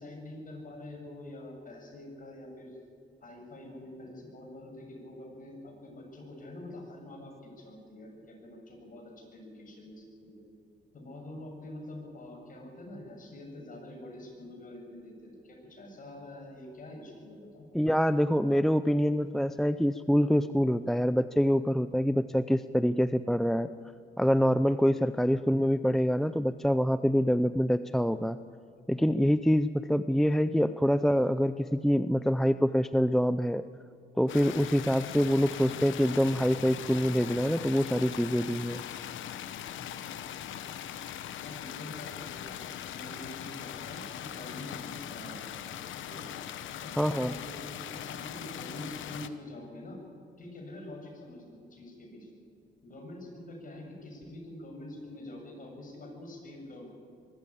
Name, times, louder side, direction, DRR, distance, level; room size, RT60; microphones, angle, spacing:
voice 1, 0.0-2.8 3.2-10.4 10.9-17.7 41.4-42.5 42.9-45.4 46.0-46.3 46.8-50.0 50.4-52.3 52.8-56.8, left 1 dB, 45° left, 0 dB, 7.6 m, -45 dB
voice 2, 17.7-23.7 24.2-28.4 28.9-33.6 34.2-38.8 47.0-47.3, equal, ahead, 12 dB, 0.5 m, -25 dB
sound 1, 34.3-49.3, left 10 dB, 75° left, 1.1 m, -40 dB
23.0 x 14.0 x 8.6 m, 2.4 s
cardioid pair, 90°, 20 cm